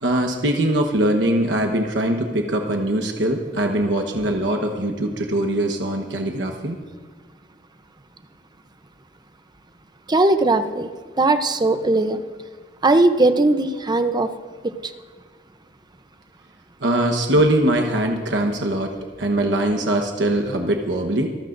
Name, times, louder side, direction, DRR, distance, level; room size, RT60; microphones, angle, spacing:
voice 1, 0.0-6.8 16.8-18.9 19.2-21.3, right 1 dB, 70° right, 3 dB, 1.2 m, -22 dB
voice 2, 10.1-10.9 11.2-12.2 12.8-14.3 14.8-14.9, right 2 dB, 25° right, 9 dB, 0.7 m, -18 dB
26.0 x 14.0 x 2.6 m, 1.5 s
head